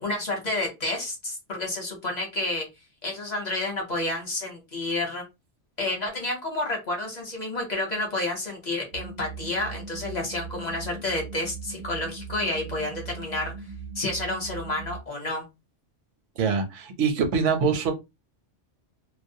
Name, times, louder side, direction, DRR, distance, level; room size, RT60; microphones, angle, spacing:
voice 1, 0.0-2.7 3.0-5.2 5.8-13.5 13.9-15.4, left 2 dB, 40° left, 0.8 m, -30 dB
sound 1, 8.9-15.0, right 5 dB, 60° right, 0.6 m, -39 dB
voice 2, 16.4-17.9, right 5 dB, 90° right, 0.9 m, -24 dB
2.3 x 2.0 x 2.6 m
omnidirectional pair, 1.2 m